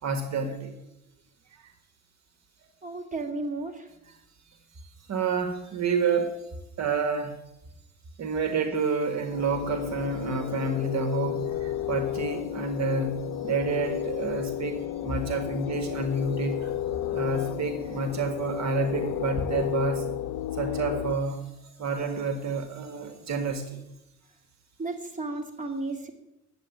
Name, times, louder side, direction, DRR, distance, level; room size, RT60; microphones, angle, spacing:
voice 1, 0.0-0.7 1.5-1.7 5.1-6.4 6.8-7.4 8.2-16.7 17.1-20.0 20.5-23.8, right 4 dB, 65° right, 8 dB, 1.5 m, -29 dB
voice 2, 2.8-3.9 24.8-26.1, right 2 dB, 25° right, 4 dB, 2.5 m, -33 dB
sound 1, 9.3-21.2, left 12 dB, 90° left, 0.5 m, -32 dB
10.5 x 8.0 x 9.0 m, 0.89 s
cardioid pair, 90°, 30 cm